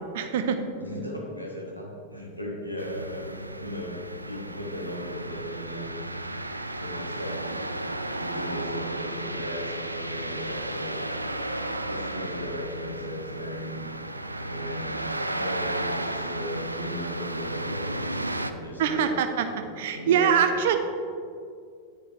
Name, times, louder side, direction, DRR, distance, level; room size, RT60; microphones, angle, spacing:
voice 1, 0.1-0.6 18.8-19.5 19.8-20.8, right 7 dB, 55° right, 8 dB, 0.8 m, -23 dB
voice 2, 0.8-4.0 4.2-5.9 6.8-7.6 8.2-11.0 11.9-13.8 14.4-15.0 15.3-17.9 18.5-19.2 19.5-20.7, equal, 90° left, -1 dB, 1.6 m, -37 dB
sound 1, 2.8-18.5, right 1 dB, 85° right, 0.4 m, -33 dB
9.7 x 9.5 x 3.2 m, 2.3 s
figure-of-eight pair, 90°, 0 cm